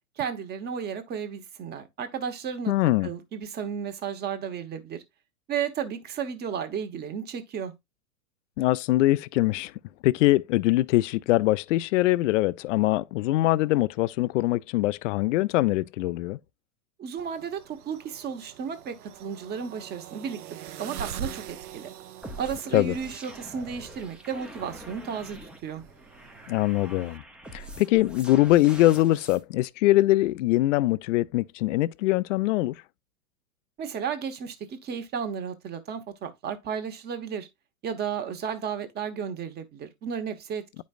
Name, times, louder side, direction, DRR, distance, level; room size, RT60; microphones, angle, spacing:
voice 1, 0.2-2.7 3.0-5.0 5.5-7.7 17.0-20.4 20.8-21.9 22.4-25.8 33.8-37.5 37.8-40.8, right 7 dB, 20° right, 1.0 m, -33 dB
voice 2, 2.7-3.1 8.6-9.7 10.0-16.4 22.7-22.9 26.5-27.2 27.5-32.7, left 17 dB, 55° left, 0.5 m, -23 dB
sound 1, 17.2-27.2, right 9 dB, 85° right, 0.8 m, -44 dB
sound 2, 22.2-29.4, right 1 dB, ahead, 0.6 m, -45 dB
9.0 x 5.2 x 2.4 m
hypercardioid pair, 125°, 44 cm